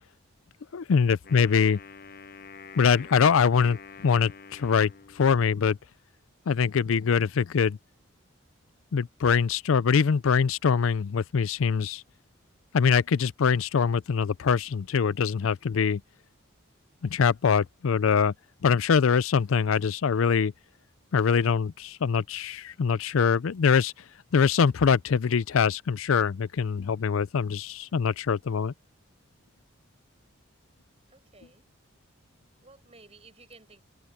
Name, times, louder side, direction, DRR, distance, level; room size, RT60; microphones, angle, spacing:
voice 1, 0.7-1.8 2.8-4.9 5.2-5.8 6.5-7.8 8.9-12.0 12.7-16.0 17.0-18.3 18.6-20.5 21.1-23.9 24.3-28.7, left 6 dB, 75° left, 0.4 m, -23 dB
Wind instrument woodwind instrument, 1.2-5.7, left 5 dB, 45° left, 0.9 m, -47 dB
voice 2, 31.1-31.7 32.6-33.8, right 3 dB, 30° right, 5.9 m, -54 dB
head